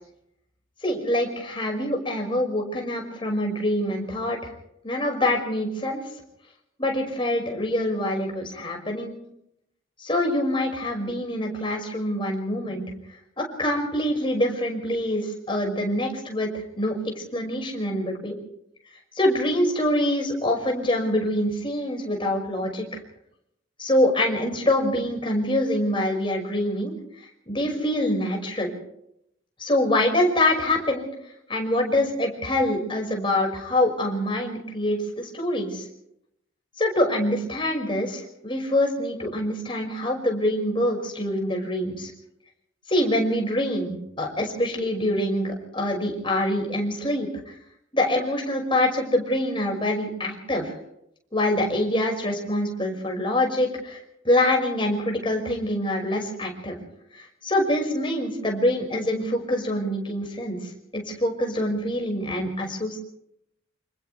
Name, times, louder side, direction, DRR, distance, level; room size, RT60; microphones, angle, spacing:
voice 1, 0.8-4.5 4.8-6.0 6.8-9.1 10.0-12.9 13.4-18.4 19.1-22.9 23.8-26.9 27.5-28.7 29.6-31.1 31.5-35.8 36.8-42.1 42.9-47.5 47.9-50.7 51.3-56.8 57.1-60.6 60.9-63.0, left 1 dB, 25° left, 1 dB, 5.8 m, -25 dB
28.5 x 27.0 x 3.4 m, 0.78 s
head